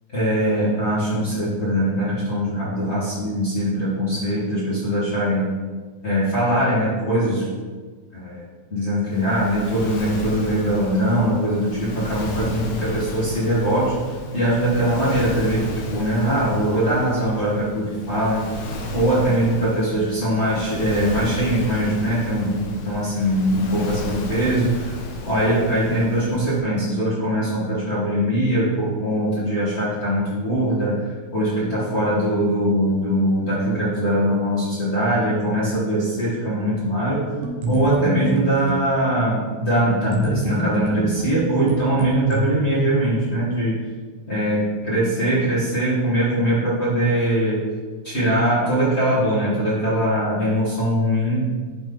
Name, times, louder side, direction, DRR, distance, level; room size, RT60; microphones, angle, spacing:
voice 1, 0.1-5.6 6.0-7.5 8.1-8.4 8.7-18.5 18.9-24.9 25.2-37.3 37.7-43.8 44.3-47.6 48.0-51.4, right 1 dB, 40° left, -10 dB, 0.9 m, -21 dB
Waves surf, 9.1-26.6, left 2 dB, 85° left, 2.9 m, -33 dB
sound 1, 37.4-38.9 40.1-42.4, right 2 dB, 70° right, 2.3 m, -26 dB
11.0 x 4.1 x 4.0 m, 1.4 s
omnidirectional pair, 4.5 m